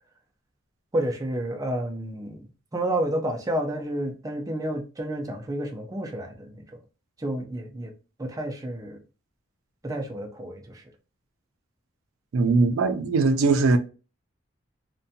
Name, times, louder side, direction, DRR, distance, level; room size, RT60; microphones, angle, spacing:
voice 1, 0.9-6.7 7.2-7.9 8.2-9.0 9.8-10.8, right 1 dB, 15° right, 0.4 m, -30 dB
voice 2, 12.3-13.8, right 3 dB, 85° right, 0.4 m, -20 dB
2.5 x 2.2 x 2.6 m
head